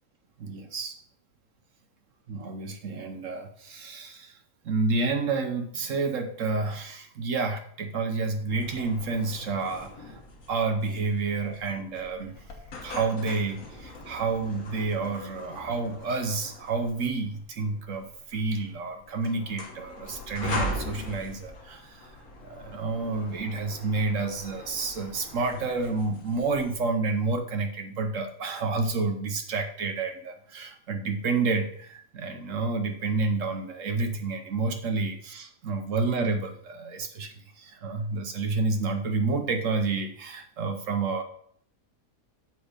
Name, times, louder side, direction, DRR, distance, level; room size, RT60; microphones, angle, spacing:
voice 1, 0.4-1.0 2.3-4.4 4.6-10.2 10.5-12.4 12.8-41.2, right 3 dB, 65° right, 5 dB, 1.1 m, -29 dB
sound 1, 8.5-26.8, left 1 dB, 80° left, 1.7 m, -41 dB
7.0 x 5.4 x 5.1 m, 0.62 s
omnidirectional pair, 1.5 m